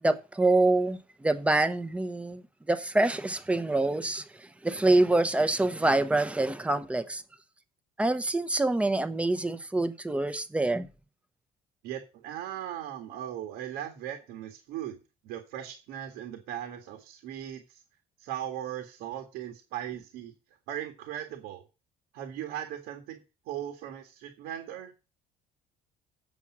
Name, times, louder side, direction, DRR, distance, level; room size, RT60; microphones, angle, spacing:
voice 1, 0.0-7.2 8.0-10.9, right 2 dB, 5° right, 0.7 m, -26 dB
voice 2, 11.8-15.0 15.2-17.8 18.2-20.3 20.7-21.6 22.1-23.2 23.5-24.9, right 11 dB, 90° right, 1.9 m, -38 dB
8.4 x 7.2 x 6.1 m
cardioid pair, 175°, 16 cm